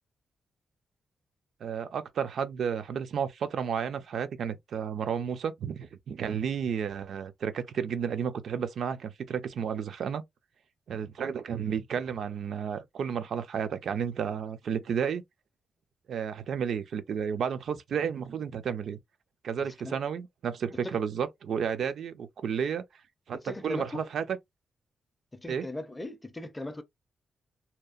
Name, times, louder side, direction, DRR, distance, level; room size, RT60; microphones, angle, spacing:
voice 1, 1.6-10.2 10.9-15.2 16.1-19.0 19.4-22.8 23.3-24.4 25.5-25.7, right 7 dB, 65° right, 0.3 m, -32 dB
voice 2, 23.3-24.0 25.3-26.8, left 1 dB, 10° left, 0.4 m, -38 dB
2.7 x 2.0 x 2.3 m
wide cardioid pair, 145°, 0 cm